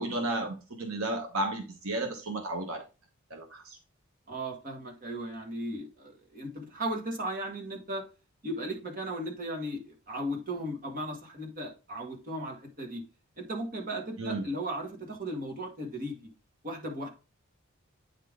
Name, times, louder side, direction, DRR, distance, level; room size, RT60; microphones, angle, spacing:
voice 1, 0.0-2.8 3.3-3.8 14.2-14.5, right 2 dB, 75° right, 1.2 m, -33 dB
voice 2, 4.3-8.1 8.4-13.0 13.4-16.3 16.6-17.1, right 1 dB, 40° right, 1.8 m, -36 dB
9.0 x 3.7 x 3.7 m
head